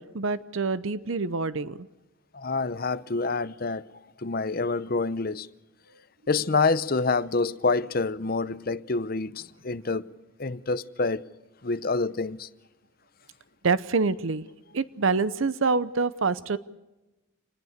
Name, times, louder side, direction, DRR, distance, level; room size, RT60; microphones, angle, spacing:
voice 1, 0.0-1.8 13.6-14.5 14.7-16.6, right 4 dB, 75° right, 0.7 m, -26 dB
voice 2, 2.3-3.9 4.2-5.5 6.3-10.1 10.4-11.3 11.6-12.5, left 3 dB, 45° left, 0.7 m, -27 dB
27.0 x 20.0 x 6.6 m
head